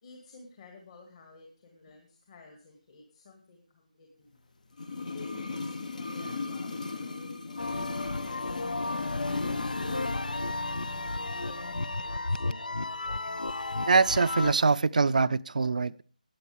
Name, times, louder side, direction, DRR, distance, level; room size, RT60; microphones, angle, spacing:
voice 1, 0.0-4.4 5.1-8.7 9.2-10.5 10.9-12.6, left 3 dB, 45° left, 2 dB, 2.3 m, -52 dB
sound 1, 4.7-10.2 10.5-10.6, left 4 dB, 65° left, 1.1 m, -37 dB
sound 2, 7.6-14.5, left 2 dB, 80° left, 0.5 m, -33 dB
voice 2, 13.9-16.0, right 4 dB, 65° right, 17 dB, 0.4 m, -24 dB
16.0 x 8.9 x 3.5 m, 0.42 s
figure-of-eight pair, 155°, 4 cm